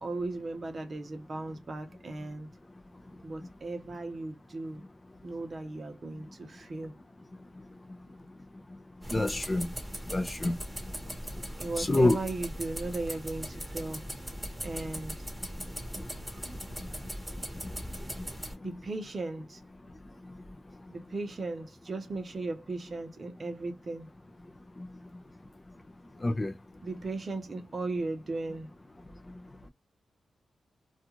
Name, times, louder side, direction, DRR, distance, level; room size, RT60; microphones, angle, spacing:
voice 1, 0.0-2.5 3.2-4.8 5.2-6.9 11.6-14.0 14.6-15.2 18.6-19.6 20.9-24.1 26.8-28.7, right 2 dB, 40° right, 0.8 m, -37 dB
sound 1, 9.0-18.5, equal, 5° right, 1.1 m, -40 dB
voice 2, 9.1-9.7 10.1-10.6 11.8-12.2 26.2-26.5, left 2 dB, 25° left, 0.5 m, -26 dB
2.4 x 2.4 x 2.9 m
cardioid pair, 100°, 0 cm